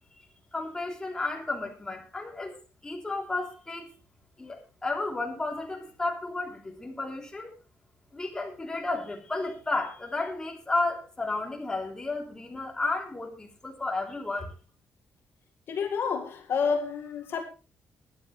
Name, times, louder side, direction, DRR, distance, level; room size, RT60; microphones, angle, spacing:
voice 1, 0.5-2.5 2.8-3.9 4.4-7.5 8.1-14.6, left 2 dB, 15° left, 3.2 m, -32 dB
voice 2, 15.7-17.4, left 5 dB, 60° left, 2.0 m, -29 dB
21.5 x 9.8 x 3.3 m
cardioid pair, 145°, 4 cm